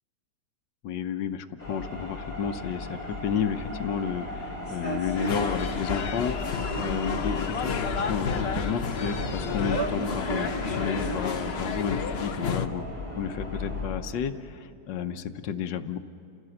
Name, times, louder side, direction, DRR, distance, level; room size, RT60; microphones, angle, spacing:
voice 1, 0.8-12.8 13.2-16.0, left 7 dB, 90° left, 9 dB, 1.5 m, -32 dB
sound 1, 1.6-13.9, left 1 dB, 20° left, 4.1 m, -34 dB
sound 2, 3.6-3.7 4.2-4.3 5.2-5.3 5.7-5.8 6.2-6.3 7.9-8.6 9.1-9.2 9.7-10.0 10.8-10.9 11.1-11.2, right 5 dB, 65° right, 1.7 m, -35 dB
sound 3, 5.2-12.7, left 6 dB, 45° left, 0.9 m, -32 dB
29.0 x 16.5 x 7.8 m, 2.5 s
omnidirectional pair, 1.9 m